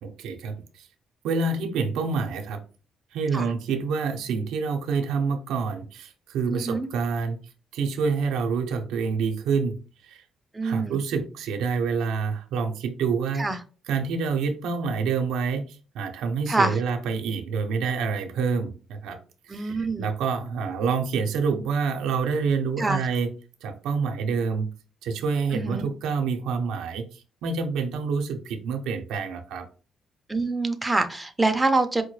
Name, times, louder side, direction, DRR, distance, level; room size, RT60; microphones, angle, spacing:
voice 1, 0.0-0.9 1.2-2.6 3.1-7.4 7.7-9.8 10.0-10.2 10.6-13.5 13.9-19.2 19.5-23.3 23.6-24.7 25.0-29.7, right 5 dB, 90° right, 0.5 m, -27 dB
voice 2, 6.5-6.9 10.5-11.0 13.4-13.6 16.5-16.8 19.5-20.1 22.8-23.1 25.5-25.9 30.3-32.0, right 2 dB, 15° right, 0.5 m, -25 dB
4.6 x 2.1 x 3.1 m
cardioid pair, 90°, 0 cm